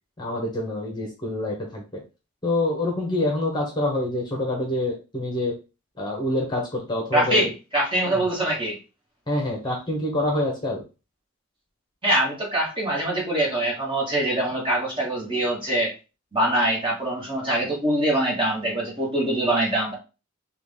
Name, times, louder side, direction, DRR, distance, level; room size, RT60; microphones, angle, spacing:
voice 1, 0.2-2.0 2.4-5.6 6.0-7.5 8.0-8.2 9.3-10.8, left 1 dB, 20° left, -1 dB, 1.0 m, -26 dB
voice 2, 7.1-8.8 12.0-15.9 16.3-19.9, right 1 dB, 25° right, -3 dB, 1.6 m, -23 dB
4.8 x 2.4 x 3.6 m, 0.30 s
head